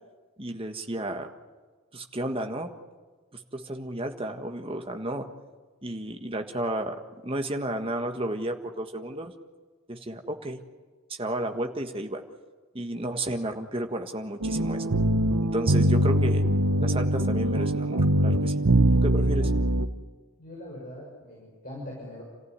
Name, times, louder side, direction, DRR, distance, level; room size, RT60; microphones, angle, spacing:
voice 1, 0.4-1.3 1.9-2.7 3.5-5.2 5.8-9.3 9.9-10.6 11.1-12.2 12.7-14.9 15.4-16.4 16.8-18.5 19.0-19.5, right 1 dB, 25° right, 5 dB, 1.6 m, -32 dB
sound 1, 14.4-19.9, right 1 dB, 80° right, 1.1 m, -23 dB
voice 2, 18.7-19.0 20.4-22.2, left 1 dB, 40° left, -3 dB, 6.5 m, -42 dB
29.5 x 15.0 x 9.6 m, 1.4 s
head